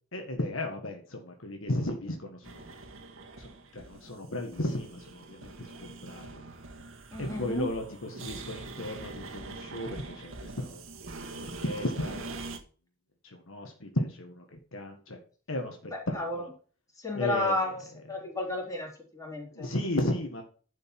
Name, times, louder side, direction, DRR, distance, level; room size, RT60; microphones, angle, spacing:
voice 1, 0.1-2.7 3.4-6.4 7.2-10.8 11.4-12.2 13.2-15.2 15.5-16.5 17.1-17.7 18.1-18.2 19.5-20.4, left 1 dB, 70° left, 3 dB, 1.7 m, -35 dB
sound 1, 2.4-12.6, right 3 dB, 75° right, 1.6 m, -43 dB
voice 2, 7.1-7.7 16.1-16.4 17.0-17.8 18.1-19.7, left 2 dB, 15° left, -2 dB, 3.7 m, -32 dB
11.0 x 5.3 x 6.0 m, 0.40 s
head